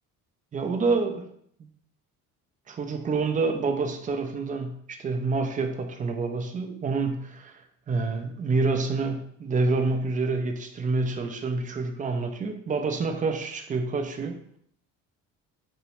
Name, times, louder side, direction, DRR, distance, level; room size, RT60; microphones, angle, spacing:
voice 1, 0.5-1.2 2.7-7.6 7.9-14.4, right 3 dB, 25° right, 5 dB, 0.3 m, -27 dB
2.7 x 2.0 x 2.9 m, 0.68 s
supercardioid pair, 80°, 36 cm